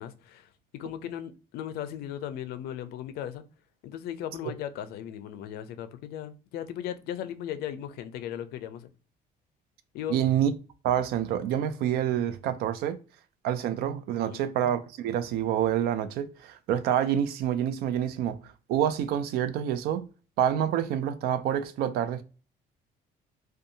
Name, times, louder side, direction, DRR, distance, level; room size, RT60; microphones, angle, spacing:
voice 1, 0.0-3.4 3.8-8.9 9.9-10.2 14.2-14.4, left 10 dB, 75° left, 0.4 m, -37 dB
voice 2, 10.1-10.5 10.8-13.0 13.4-20.1 20.4-22.2, right 10 dB, 75° right, 0.4 m, -27 dB
2.7 x 2.2 x 2.5 m
cardioid pair, 175°, 16 cm